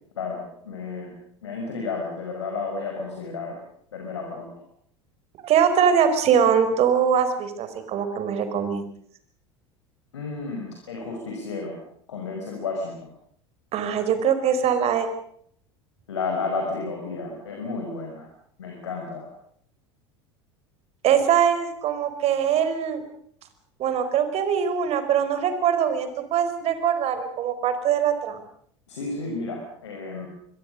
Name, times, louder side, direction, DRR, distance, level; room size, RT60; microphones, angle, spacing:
voice 1, 0.2-1.1 1.4-3.6 3.9-4.5 10.1-11.8 12.1-13.1 16.1-18.3 18.6-19.3 28.9-30.3, left 4 dB, 80° left, 1 dB, 5.6 m, -32 dB
voice 2, 5.4-8.9 13.7-15.1 21.0-23.0 23.8-28.4, right 8 dB, 45° right, 10 dB, 4.9 m, -22 dB
26.5 x 22.5 x 6.6 m, 0.65 s
hypercardioid pair, 75°, 14 cm